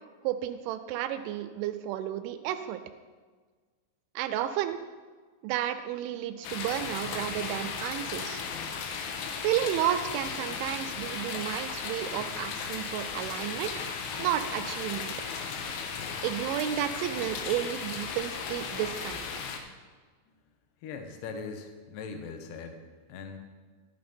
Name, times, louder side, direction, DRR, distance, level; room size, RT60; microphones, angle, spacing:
voice 1, 0.2-2.8 4.2-4.8 5.4-8.4 9.4-13.9 14.2-15.1 16.2-19.3, right 12 dB, 85° right, 10 dB, 2.8 m, -32 dB
sound 1, 6.4-19.6, left 5 dB, 90° left, 3.5 m, -36 dB
voice 2, 20.8-22.8 23.1-23.4, left 5 dB, 75° left, 6 dB, 2.6 m, -40 dB
12.0 x 9.4 x 4.3 m, 1.5 s
omnidirectional pair, 5.7 m